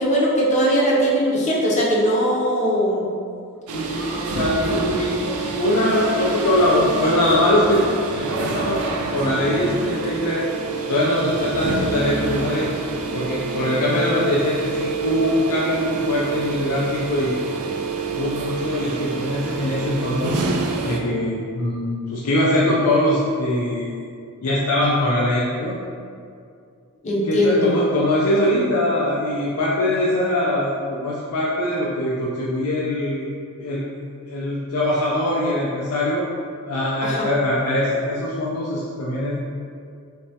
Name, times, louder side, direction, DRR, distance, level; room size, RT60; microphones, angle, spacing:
voice 1, 0.0-3.1 27.0-27.7 37.0-37.3, equal, 30° left, -4 dB, 0.6 m, -20 dB
voice 2, 3.7-7.8 8.1-8.8 9.1-10.4 10.9-12.7 13.1-17.5 18.1-20.4 20.8-23.9 24.4-25.8 27.2-33.2 33.6-33.9 34.3-36.2 36.7-39.4, left 1 dB, 90° left, -5 dB, 0.4 m, -22 dB
sound 1, 3.7-21.0, right 4 dB, 85° right, 0.4 m, -27 dB
3.3 x 3.1 x 2.7 m, 2.4 s
head